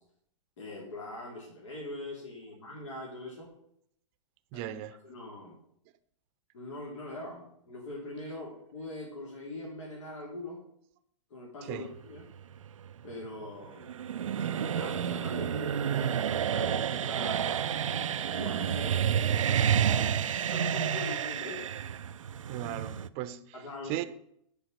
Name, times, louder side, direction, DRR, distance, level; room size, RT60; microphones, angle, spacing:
voice 1, 0.6-3.5 4.5-4.8 5.0-5.6 6.5-10.6 11.3-12.2 13.0-13.9 14.4-17.5 18.3-21.6 23.5-24.0, left 2 dB, 65° left, 3.3 m, -42 dB
voice 2, 4.5-5.0 11.7-11.9 22.5-23.4 23.9-24.0, right 13 dB, 40° right, 0.8 m, -36 dB
sound 1, 11.9-23.1, right 8 dB, 85° right, 0.5 m, -30 dB
10.0 x 5.0 x 6.5 m
hypercardioid pair, 120°, 16 cm